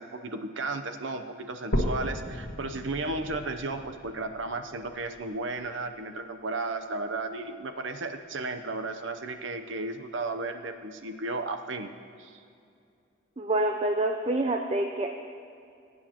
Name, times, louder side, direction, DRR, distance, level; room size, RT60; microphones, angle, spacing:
voice 1, 0.0-11.9 12.2-12.4, right 3 dB, 65° right, 7 dB, 0.7 m, -34 dB
sound 1, 1.7-5.7 6.3-6.4 6.9-7.0 7.4-7.5 8.3-8.4, equal, 70° left, 1.4 m, -34 dB
voice 2, 13.4-15.1, right 1 dB, 30° right, 4 dB, 0.5 m, -27 dB
21.5 x 9.4 x 3.0 m, 2.5 s
head